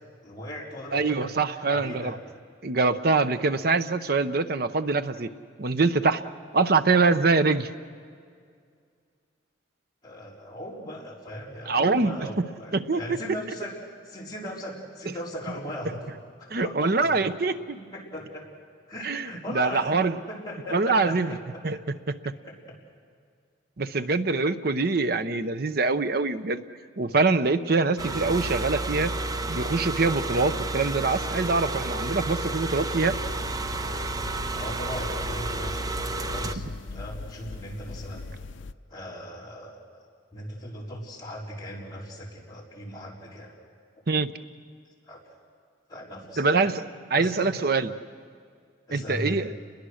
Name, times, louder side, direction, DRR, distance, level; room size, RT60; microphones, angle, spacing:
voice 1, 0.2-2.2 10.0-16.0 16.4-17.3 17.7-18.4 18.9-21.6 22.5-22.6 23.9-24.2 34.5-38.2 38.9-40.0 40.3-43.5 45.1-45.3 45.9-46.7 47.2-47.5 48.9-49.4, equal, 20° left, -5 dB, 4.4 m, -38 dB
voice 2, 0.9-2.2 2.6-5.3 5.6-6.2 6.5-7.7 11.7-12.2 12.7-13.0 16.5-17.8 19.0-20.2 20.7-21.3 21.6-21.8 22.1-22.2 23.8-26.6 27.0-29.1 29.5-33.2 44.1-44.3 46.4-46.8 47.1-47.9 48.9-49.5, right 3 dB, 55° right, 11 dB, 0.8 m, -24 dB
sound 1, 28.0-36.6, right 2 dB, 20° right, 0.6 m, -31 dB
sound 2, 33.1-38.7, left 3 dB, 80° left, 0.5 m, -40 dB
30.0 x 21.5 x 6.5 m, 2.2 s
head